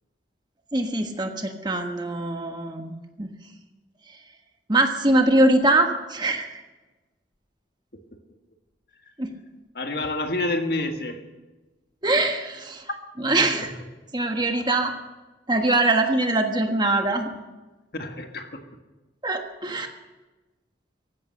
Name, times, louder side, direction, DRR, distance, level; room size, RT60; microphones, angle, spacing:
voice 1, 0.7-3.3 4.7-6.6 9.2-9.3 12.0-12.9 13.2-13.7 14.1-14.9 15.5-17.3 19.2-19.9, right 2 dB, 25° right, 5 dB, 1.3 m, -23 dB
voice 2, 9.7-11.3 13.6-13.7 17.9-18.7, left 2 dB, 55° left, 5 dB, 1.7 m, -28 dB
15.5 x 12.5 x 6.6 m, 1.1 s
head